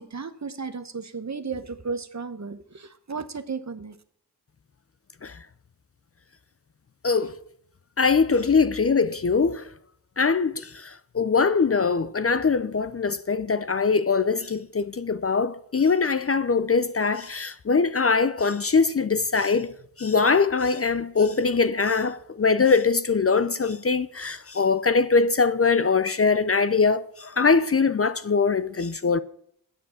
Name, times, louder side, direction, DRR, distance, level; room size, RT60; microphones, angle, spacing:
voice 1, 0.0-3.9, right 5 dB, 45° right, 1.0 m, -34 dB
voice 2, 7.0-7.4 8.0-9.7 10.2-19.7 20.0-29.2, left 4 dB, 35° left, 0.5 m, -22 dB
8.4 x 7.2 x 7.1 m
cardioid pair, 50°, 39 cm